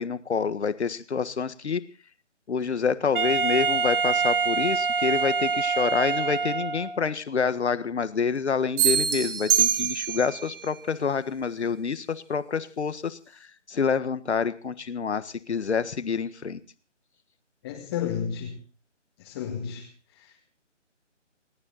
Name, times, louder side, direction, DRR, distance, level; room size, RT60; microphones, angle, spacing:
voice 1, 0.0-1.8 2.5-13.2 13.7-16.6, left 6 dB, 65° left, 14 dB, 1.6 m, -27 dB
Wind instrument woodwind instrument, 3.1-7.1, right 5 dB, 45° right, 1.8 m, -25 dB
sound 1, 8.8-10.4, right 10 dB, 15° right, 1.6 m, -24 dB
voice 2, 17.6-18.6 19.2-19.9, left 8 dB, 20° left, -1 dB, 2.0 m, -31 dB
29.0 x 9.9 x 4.0 m, 0.35 s
figure-of-eight pair, 160°, 37 cm